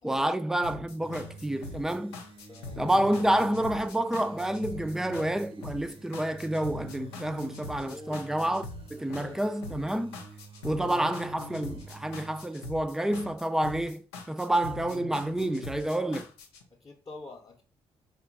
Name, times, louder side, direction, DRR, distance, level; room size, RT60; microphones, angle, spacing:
voice 1, 0.0-2.1 2.8-8.6 8.9-10.2 10.6-16.3, right 1 dB, 5° right, 0.4 m, -29 dB
sound 1, 0.6-16.6, left 3 dB, 85° left, 0.6 m, -43 dB
sound 2, 1.0-12.5, right 5 dB, 40° right, 0.7 m, -49 dB
voice 2, 2.5-2.8 7.8-8.2 9.1-9.5 10.6-11.0 16.8-17.6, left 3 dB, 25° left, 0.8 m, -46 dB
4.3 x 2.2 x 4.0 m
hypercardioid pair, 45°, 14 cm